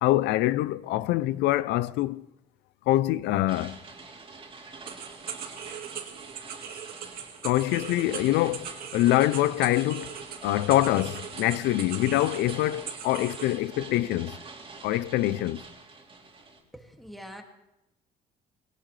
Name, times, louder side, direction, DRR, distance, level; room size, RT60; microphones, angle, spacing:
voice 1, 0.0-2.3 2.9-3.8 7.4-10.1 10.4-14.4 14.8-15.6, left 15 dB, 85° left, 0.5 m, -25 dB
sound 1, 3.5-16.6, right 3 dB, 30° right, 3.1 m, -45 dB
sound 2, 4.9-13.6, right 8 dB, 60° right, 2.0 m, -40 dB
voice 2, 16.7-17.4, equal, ahead, 2.2 m, -44 dB
21.0 x 17.5 x 3.3 m
cardioid pair, 110°, 17 cm